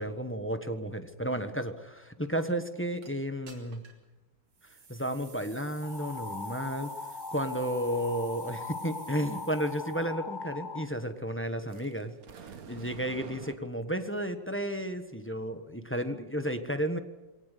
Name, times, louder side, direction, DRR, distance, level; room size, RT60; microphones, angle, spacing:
voice 1, 0.0-3.9 4.9-6.9 7.3-17.0, equal, 10° left, 8 dB, 0.9 m, -33 dB
sound 1, 3.0-3.1 3.5-4.0 4.5-10.1, right 4 dB, 85° right, 3.9 m, -53 dB
sound 2, 5.8-10.8, left 3 dB, 25° left, 1.2 m, -40 dB
sound 3, 11.7-13.6, right 6 dB, 50° right, 1.5 m, -46 dB
22.0 x 18.5 x 8.4 m, 1.1 s
omnidirectional pair, 2.3 m